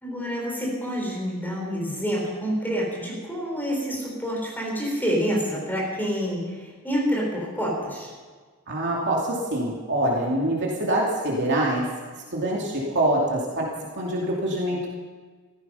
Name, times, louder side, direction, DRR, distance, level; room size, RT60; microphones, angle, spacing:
voice 1, 0.0-8.1, equal, 10° left, -2 dB, 4.4 m, -28 dB
voice 2, 8.7-11.8 12.3-13.7 14.0-14.9, right 1 dB, 55° right, -3 dB, 2.7 m, -25 dB
16.5 x 14.5 x 5.7 m, 1.5 s
head